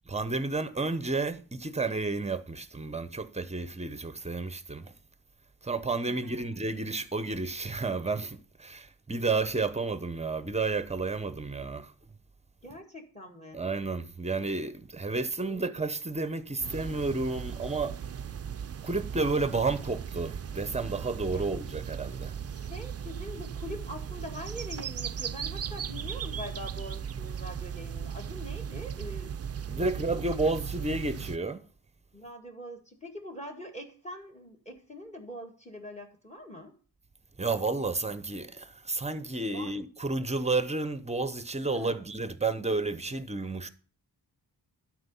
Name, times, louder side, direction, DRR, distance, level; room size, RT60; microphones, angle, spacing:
voice 1, 0.1-4.9 5.6-11.9 13.5-18.0 18.8-22.3 29.7-31.6 37.4-43.7, right 3 dB, 15° right, 0.8 m, -31 dB
voice 2, 6.1-6.4 12.6-13.6 15.4-15.7 21.3-21.5 22.5-29.3 29.7-30.2 32.1-36.8 39.4-39.7 41.7-42.0, equal, 15° left, 1.9 m, -43 dB
sound 1, 16.6-31.4, right 8 dB, 40° right, 0.4 m, -37 dB
12.0 x 5.0 x 5.4 m
wide cardioid pair, 130°, 41 cm